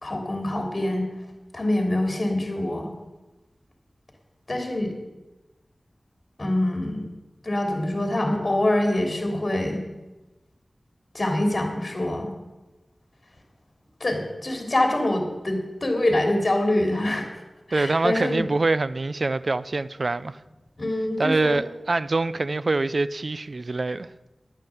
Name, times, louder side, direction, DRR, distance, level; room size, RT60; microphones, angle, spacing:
voice 1, 0.0-1.1 1.5-2.9 4.5-5.0 6.4-7.0 7.4-9.8 11.1-12.3 14.0-17.3 17.7-18.4 20.8-21.6, left 1 dB, 50° left, 3.3 m, -25 dB
voice 2, 17.7-20.4 21.2-24.1, right 3 dB, 65° right, 0.5 m, -25 dB
11.0 x 9.0 x 7.8 m
wide cardioid pair, 45°, 0 cm